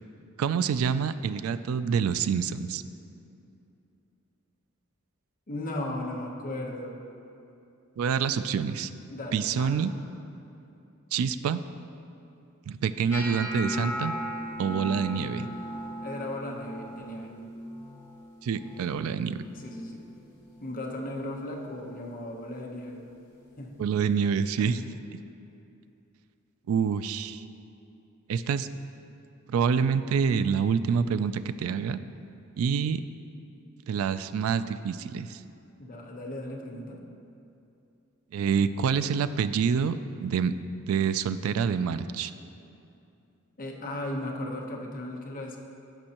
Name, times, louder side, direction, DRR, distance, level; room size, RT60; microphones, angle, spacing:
voice 1, 0.4-2.8 8.0-8.9 9.3-9.9 11.1-11.6 12.7-14.1 14.6-15.5 18.4-19.4 23.8-24.8 26.7-27.4 28.3-28.7 29.5-32.0 32.6-33.0 33.9-35.4 38.3-40.5 40.9-42.3, right 6 dB, 75° right, 13 dB, 0.3 m, -27 dB
voice 2, 5.5-6.9 9.1-9.9 16.0-17.3 19.5-20.1 20.6-23.0 23.6-23.8 24.6-24.8 35.8-37.0 43.6-45.6, left 1 dB, 40° left, 0 dB, 0.9 m, -36 dB
sound 1, 13.1-19.2 19.5-20.0 20.3-20.9 21.5-21.7 23.5-23.6, equal, 15° left, 2.1 m, -37 dB
15.0 x 5.3 x 2.9 m, 2.7 s
head